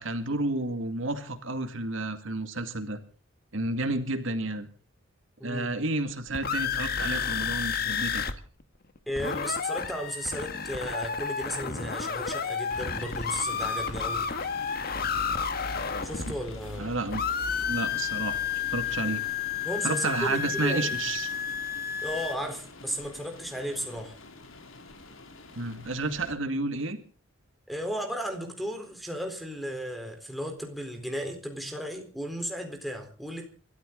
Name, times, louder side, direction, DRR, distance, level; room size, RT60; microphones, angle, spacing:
voice 1, 0.0-3.0 3.5-4.7 5.4-8.2 16.3-16.4 16.8-17.2 17.7-18.4 18.7-19.2 19.8-21.3 25.6-27.0, right 2 dB, 75° right, 8 dB, 2.2 m, -31 dB
voice 2, 5.4-5.7 9.1-14.3 16.0-16.9 19.6-20.9 22.0-24.2 27.7-33.5, equal, ahead, 3 dB, 4.0 m, -35 dB
sound 1, 6.1-8.3 8.6-8.7 9.0-16.8 17.1-22.4, left 6 dB, 50° left, 1.7 m, -31 dB
sound 2, 12.7-26.3, left 1 dB, 80° left, 3.6 m, -44 dB
26.5 x 13.5 x 3.9 m, 0.39 s
head